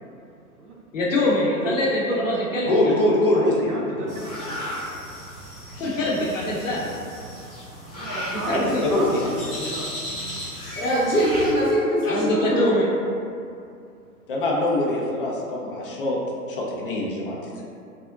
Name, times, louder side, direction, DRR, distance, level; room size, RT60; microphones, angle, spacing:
voice 1, 0.9-2.7 5.8-6.9 8.5-8.8 12.1-12.9, left 1 dB, 55° left, -5 dB, 0.8 m, -23 dB
voice 2, 2.7-4.1 8.5-9.2 14.3-16.2 16.5-17.6, left 1 dB, 40° left, -3 dB, 0.4 m, -23 dB
voice 3, 3.3-4.7 7.9-9.9, right 1 dB, 90° right, -2 dB, 0.5 m, -34 dB
sound 1, 4.1-11.5, equal, 15° left, 0.8 m, -35 dB
voice 4, 10.7-12.8, equal, 80° left, -11 dB, 1.0 m, -22 dB
3.4 x 2.0 x 2.5 m, 2.5 s
figure-of-eight pair, 110°, 45 cm